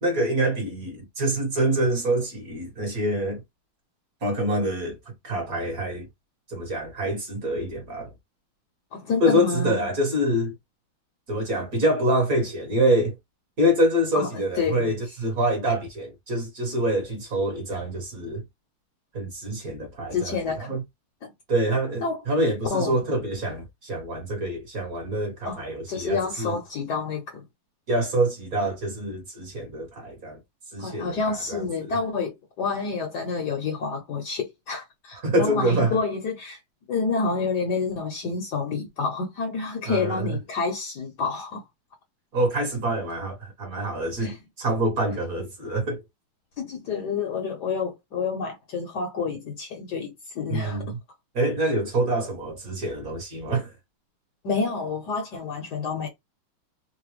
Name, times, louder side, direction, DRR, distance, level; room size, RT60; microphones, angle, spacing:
voice 1, 0.0-3.4 4.2-5.0 5.2-6.1 6.5-8.1 9.2-10.5 11.3-13.1 13.6-18.4 19.1-20.4 20.7-20.8 21.5-26.6 27.9-30.4 30.7-31.6 35.2-36.0 39.9-40.4 42.3-46.0 50.5-51.0 51.3-53.7, right 1 dB, 45° right, 1.7 m, -26 dB
voice 2, 8.9-9.8 14.1-14.9 20.1-20.7 21.2-21.3 22.0-22.2 22.7-23.0 25.4-27.4 30.8-36.6 36.9-41.6 44.2-44.4 46.6-50.8 54.4-56.1, left 4 dB, 60° left, 1.2 m, -29 dB
3.9 x 2.2 x 3.1 m
omnidirectional pair, 2.3 m